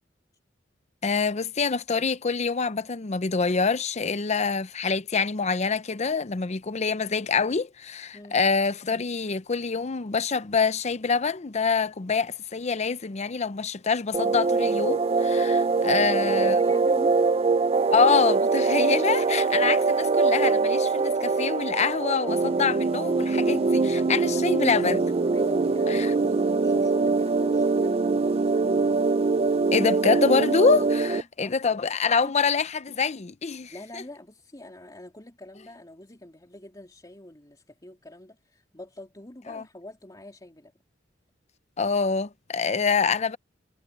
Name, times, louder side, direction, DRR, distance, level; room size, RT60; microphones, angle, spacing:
voice 1, 1.0-16.6 17.9-25.0 25.9-26.1 29.7-31.1 31.4-34.0 39.5-39.6 41.8-43.4, left 5 dB, 35° left, 0.6 m, -25 dB
sound 1, 14.1-31.2, right 4 dB, 30° right, 0.4 m, -23 dB
voice 2, 15.8-17.5 24.0-24.8 25.3-28.8 30.9-31.6 32.2-32.3 33.7-40.7, left 1 dB, 20° left, 3.0 m, -44 dB
head